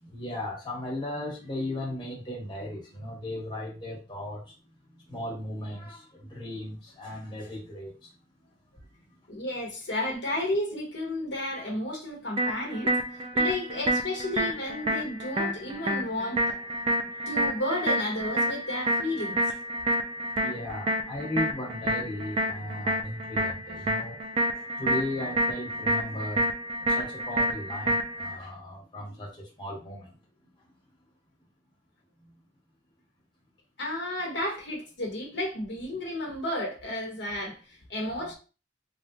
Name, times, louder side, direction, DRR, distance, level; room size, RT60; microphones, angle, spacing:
voice 1, 0.0-4.5 5.1-8.1 20.3-24.2 24.8-30.1, left 1 dB, 25° left, 1.1 m, -36 dB
voice 2, 9.3-16.6 17.3-19.6 33.8-38.3, left 1 dB, 75° left, 1.0 m, -32 dB
sound 1, 12.4-28.4, equal, 30° right, 0.4 m, -29 dB
3.1 x 2.5 x 2.7 m
head